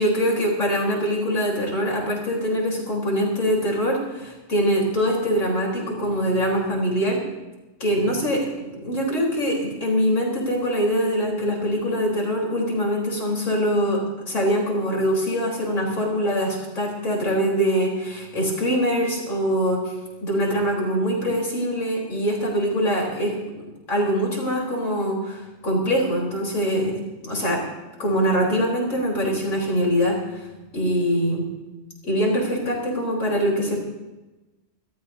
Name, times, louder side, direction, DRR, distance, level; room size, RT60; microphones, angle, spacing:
voice 1, 0.0-7.2 7.8-19.9 20.2-23.3 23.9-26.9 27.2-27.6 28.0-30.5 30.7-31.5 32.0-33.7, equal, 85° left, -2 dB, 4.4 m, -23 dB
27.5 x 13.5 x 2.8 m, 1.1 s
omnidirectional pair, 1.3 m